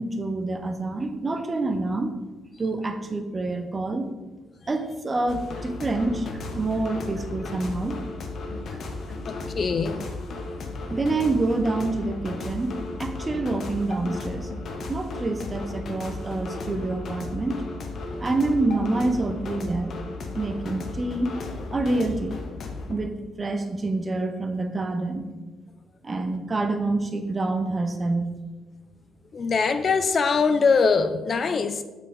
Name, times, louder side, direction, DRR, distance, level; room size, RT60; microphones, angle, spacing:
voice 1, 0.0-2.2 2.6-4.1 4.7-8.0 10.9-14.5 14.9-17.7 18.2-19.9 20.4-21.4 21.7-22.4 22.9-25.3 26.0-28.3, right 2 dB, 30° right, 0.9 m, -27 dB
sound 1, 5.3-23.0, left 3 dB, 60° left, 1.1 m, -35 dB
voice 2, 9.2-10.0 29.3-31.8, left 5 dB, 45° left, 0.5 m, -22 dB
6.1 x 5.5 x 5.3 m
cardioid pair, 90°, 0 cm